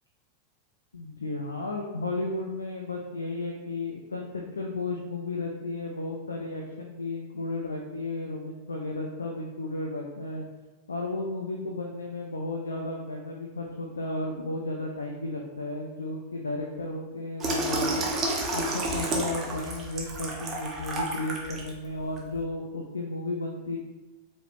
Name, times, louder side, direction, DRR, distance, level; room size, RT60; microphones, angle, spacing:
voice 1, 0.9-10.5 10.9-18.1 18.5-23.8, left 2 dB, 75° left, 0 dB, 0.4 m, -33 dB
Water tap faucet / Sink (filling or washing), 17.4-21.7 22.2-22.4, right 2 dB, 25° right, 0.9 m, -30 dB
4.7 x 3.1 x 2.6 m, 1.2 s
figure-of-eight pair, 90°, 0 cm